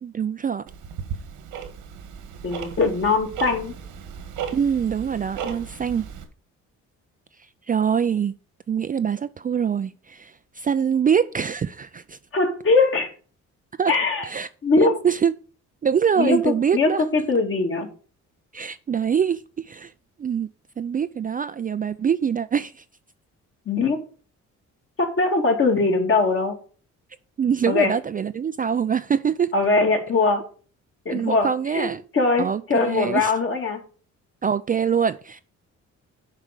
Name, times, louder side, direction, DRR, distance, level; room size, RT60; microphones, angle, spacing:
voice 1, 0.0-0.6 4.5-6.1 7.7-8.3 8.7-12.2 13.8-14.0 14.2-14.5 14.8-15.3 15.8-17.0 18.5-19.9 20.2-20.5 20.8-22.8 27.4-29.5 31.1-32.0 32.4-33.3 34.4-35.4, right 7 dB, 30° right, 0.4 m, -24 dB
Tick-tock, 0.7-6.2, right 7 dB, 90° right, 1.7 m, -35 dB
voice 2, 2.4-3.7 12.3-13.1 13.9-14.3 14.6-15.0 16.2-17.9 23.7-24.0 25.0-26.5 27.7-27.9 29.5-30.4 31.1-31.5 31.7-31.9 32.1-33.8, left 3 dB, 45° left, 2.4 m, -21 dB
7.3 x 4.8 x 6.6 m
cardioid pair, 90°, 30 cm